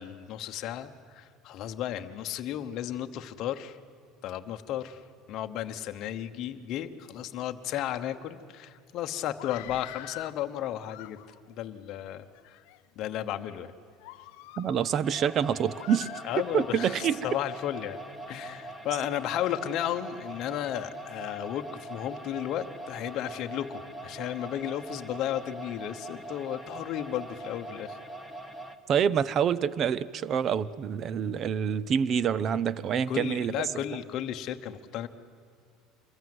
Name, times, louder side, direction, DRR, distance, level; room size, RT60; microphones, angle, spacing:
voice 1, 0.0-3.8 4.2-11.2 11.5-12.6 13.0-13.7 16.2-18.0 18.3-28.0 33.1-35.1, left 11 dB, 40° left, 6 dB, 1.0 m, -34 dB
Screaming, 9.3-10.4 10.8-11.5 12.2-12.8 13.3-13.5 14.0-15.0 15.8-16.8, left 19 dB, 75° left, 0.7 m, -45 dB
voice 2, 14.6-16.1 16.5-17.3 28.9-33.5, right 8 dB, 30° right, 19 dB, 0.6 m, -27 dB
sound 1, 15.0-28.8, right 1 dB, 5° right, 1.0 m, -42 dB
25.5 x 22.0 x 7.9 m, 2.2 s
cardioid pair, 170°, 0 cm